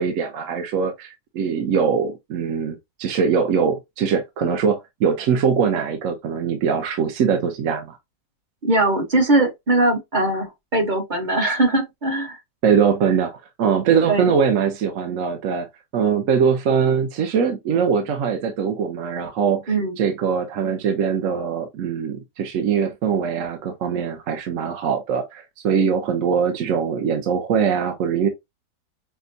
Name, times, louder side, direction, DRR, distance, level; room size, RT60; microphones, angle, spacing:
voice 1, 0.0-8.0 12.6-13.3 13.6-15.7 15.9-28.3, right 6 dB, 60° right, 0.9 m, -22 dB
voice 2, 8.6-12.4 14.1-14.3 19.7-20.0, right 2 dB, 35° right, 1.0 m, -20 dB
5.9 x 2.2 x 2.6 m
omnidirectional pair, 1.7 m